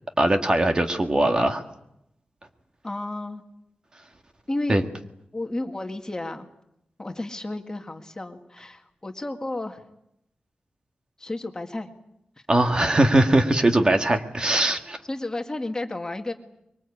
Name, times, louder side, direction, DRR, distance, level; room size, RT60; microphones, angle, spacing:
voice 1, 0.2-1.6 4.7-4.8 12.5-15.0, right 1 dB, 30° right, 6 dB, 1.8 m, -20 dB
voice 2, 2.8-3.4 4.5-4.8 5.3-6.5 7.0-9.8 11.2-11.9 15.1-16.3, left 2 dB, 25° left, 5 dB, 1.9 m, -32 dB
24.5 x 23.0 x 8.5 m, 0.79 s
wide cardioid pair, 130°, 3 cm